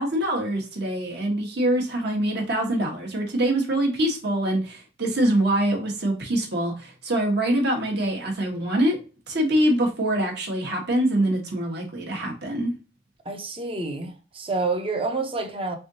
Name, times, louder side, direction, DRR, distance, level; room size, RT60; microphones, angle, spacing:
voice 1, 0.0-9.0 9.3-12.7, right 1 dB, 60° right, 1.2 m, -24 dB
voice 2, 13.2-15.8, right 3 dB, 30° right, 0.7 m, -28 dB
3.7 x 3.4 x 2.7 m
head